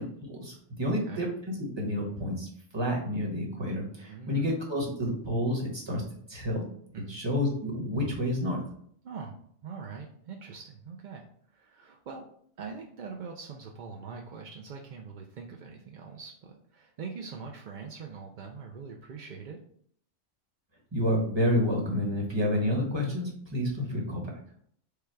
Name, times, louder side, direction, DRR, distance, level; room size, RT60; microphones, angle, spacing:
voice 1, 0.0-2.5 2.7-6.0 6.3-6.6 7.1-8.6 20.9-24.3, equal, 20° right, -2 dB, 1.1 m, -29 dB
voice 2, 0.8-1.3 4.1-4.5 6.9-7.2 9.0-12.2 12.6-19.6, right 5 dB, 65° right, 1 dB, 0.4 m, -43 dB
5.0 x 2.3 x 4.5 m, 0.64 s
omnidirectional pair, 1.3 m